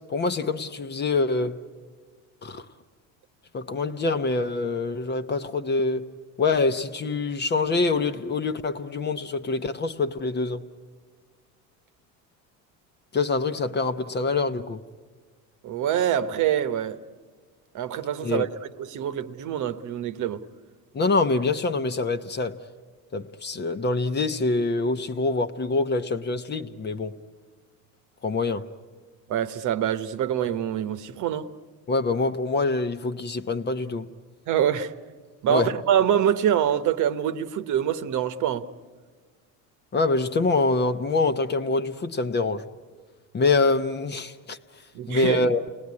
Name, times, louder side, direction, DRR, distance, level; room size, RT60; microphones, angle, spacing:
voice 1, 0.1-1.6 2.4-2.6 3.5-6.1 6.4-10.6 13.1-14.8 18.2-18.5 20.9-22.6 23.1-27.1 28.2-28.7 31.9-34.1 35.5-35.7 39.9-42.6 43.3-44.6 45.1-45.7, left 3 dB, 25° left, 0.9 m, -25 dB
voice 2, 15.6-17.0 17.7-20.4 29.3-31.5 34.5-34.9 35.4-38.7 44.9-45.5, right 10 dB, 50° right, 1.1 m, -25 dB
29.5 x 19.5 x 9.7 m
supercardioid pair, 115°, 38 cm